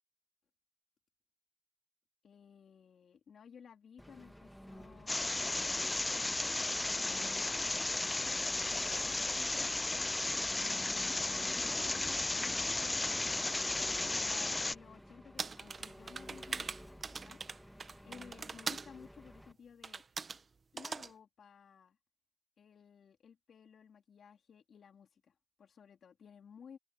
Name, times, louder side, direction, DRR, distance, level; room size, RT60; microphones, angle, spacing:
voice 1, 2.2-5.5 6.9-7.5 9.2-10.1 10.6-12.9 14.0-17.4 18.0-20.0 20.7-22.0 22.6-26.8, left 7 dB, 55° left, 3.0 m, -56 dB
Engine, 4.0-19.5, equal, ahead, 1.8 m, -53 dB
sound 1, 5.1-14.7, left 2 dB, 15° left, 0.3 m, -34 dB
sound 2, 15.4-18.9 19.8-20.4 20.8-21.1, right 4 dB, 35° right, 1.5 m, -41 dB
cardioid pair, 90°, 0 cm